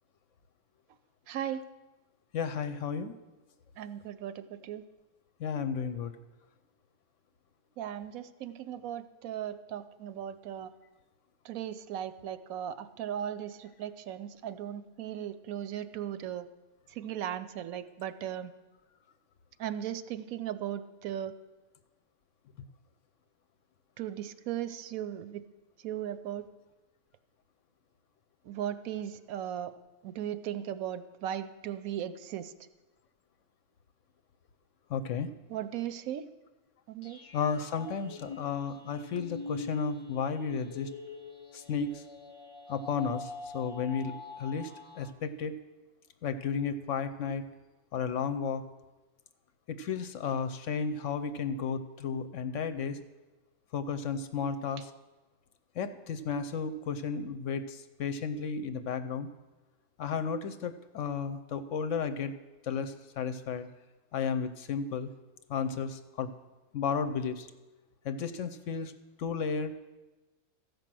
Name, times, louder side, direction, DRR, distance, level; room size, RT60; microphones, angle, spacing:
voice 1, 1.3-1.6 3.8-4.8 7.8-10.7 11.4-16.5 16.9-18.5 19.6-21.3 24.0-25.4 25.8-26.5 28.4-29.7 30.0-32.5 35.5-36.3 36.9-37.2 54.8-54.9, right 10 dB, 80° right, 12 dB, 1.0 m, -37 dB
voice 2, 2.3-3.1 5.4-6.1 34.9-35.3 37.3-40.9 41.5-42.0 42.7-44.7 45.0-45.6 46.2-47.4 47.9-48.6 49.7-53.0 53.7-54.9 55.8-59.3 60.0-62.3 62.6-63.7 64.1-65.1 65.5-66.3 66.7-67.5 68.0-68.9 69.2-69.7, left 6 dB, 65° left, 10 dB, 0.9 m, -33 dB
sound 1, 37.0-45.1, left 3 dB, 35° left, 0.5 m, -44 dB
14.0 x 5.3 x 7.5 m, 1.1 s
omnidirectional pair, 1.5 m